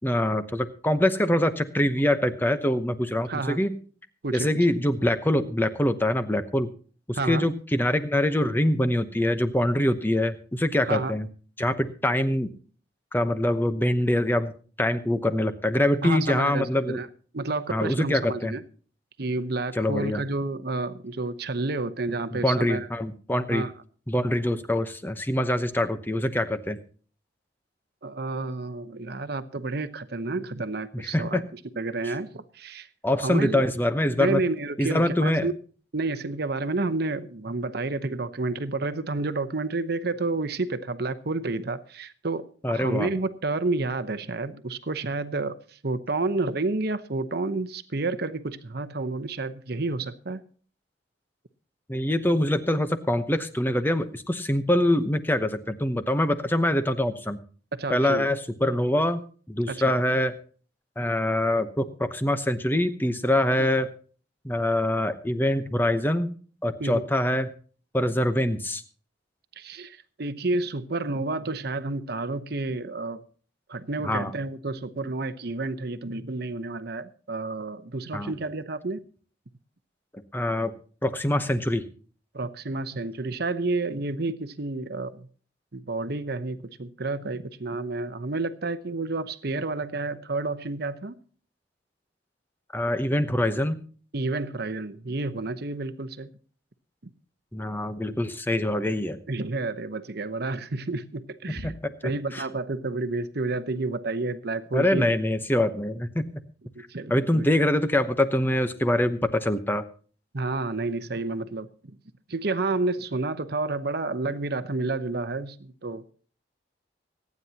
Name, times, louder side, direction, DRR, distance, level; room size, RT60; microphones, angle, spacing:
voice 1, 0.0-3.7 4.3-6.7 7.1-11.3 11.6-12.5 13.1-14.5 14.8-17.0 17.7-18.5 19.7-20.2 22.3-23.7 24.1-26.8 30.9-31.4 32.0-32.1 33.0-34.4 34.8-35.5 42.6-43.1 51.9-57.4 57.9-60.3 61.0-63.9 64.4-66.3 66.6-67.5 67.9-68.8 74.0-74.3 78.1-78.3 80.3-80.7 81.0-81.8 92.7-93.8 97.5-99.2 101.5-101.7 102.0-102.4 104.7-106.4 107.1-109.8, left 1 dB, 10° left, 0.9 m, -24 dB
voice 2, 3.3-3.6 4.2-4.5 7.1-7.5 10.9-11.1 16.0-17.1 17.3-18.6 19.2-22.9 23.5-23.7 28.0-32.9 33.2-33.6 34.2-35.5 35.9-45.6 45.8-50.4 57.7-58.3 59.7-59.9 66.8-67.0 69.6-73.2 73.7-79.0 82.3-85.3 85.7-91.2 94.1-96.3 99.3-101.8 102.0-105.1 106.7-107.5 110.3-111.7 112.3-116.0, right 3 dB, 55° right, 0.9 m, -30 dB
24.5 x 9.6 x 2.9 m
head